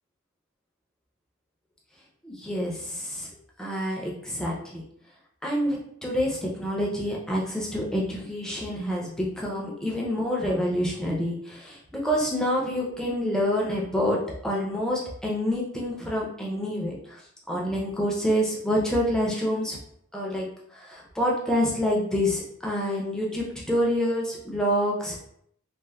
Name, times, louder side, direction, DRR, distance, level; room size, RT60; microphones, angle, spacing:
voice 1, 2.2-3.3 3.6-4.8 5.4-17.2 17.5-19.8 20.1-20.5 20.7-25.2, equal, 5° left, -3 dB, 0.4 m, -27 dB
3.2 x 2.1 x 2.2 m, 0.69 s
head